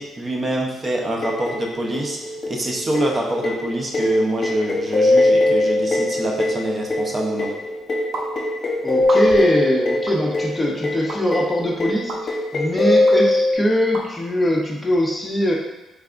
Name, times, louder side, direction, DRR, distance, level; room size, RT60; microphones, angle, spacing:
voice 1, 0.0-2.2 2.5-7.5, right 1 dB, 30° right, 0 dB, 0.6 m, -25 dB
sound 1, 1.2-13.5, left 2 dB, 50° left, 0.9 m, -22 dB
sound 2, 8.1-8.3 9.0-9.5 10.1-10.2 11.1-11.2 12.1-12.2 13.1-13.2 13.9-14.1, right 2 dB, 70° right, 0.7 m, -30 dB
voice 2, 8.8-15.5, equal, 15° left, -1 dB, 0.7 m, -22 dB
4.7 x 3.3 x 2.4 m, 1.0 s
cardioid pair, 90°, 0 cm